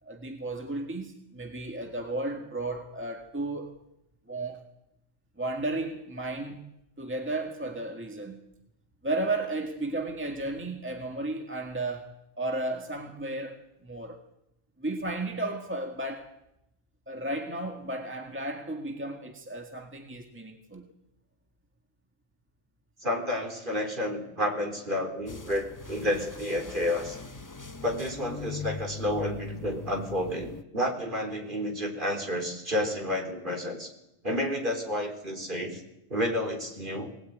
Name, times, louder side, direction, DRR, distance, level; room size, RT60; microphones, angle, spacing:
voice 1, 0.0-3.8 4.3-4.6 5.4-6.6 7.0-8.4 9.0-14.2 14.8-16.3 17.1-20.9, right 2 dB, 10° right, 1.8 m, -34 dB
voice 2, 23.0-27.2 27.8-33.9 34.2-35.8 36.1-37.1, left 1 dB, 40° right, 4.1 m, -30 dB
sound 1, 25.3-30.6, left 4 dB, 15° left, 0.8 m, -41 dB
23.0 x 19.0 x 9.4 m
omnidirectional pair, 1.3 m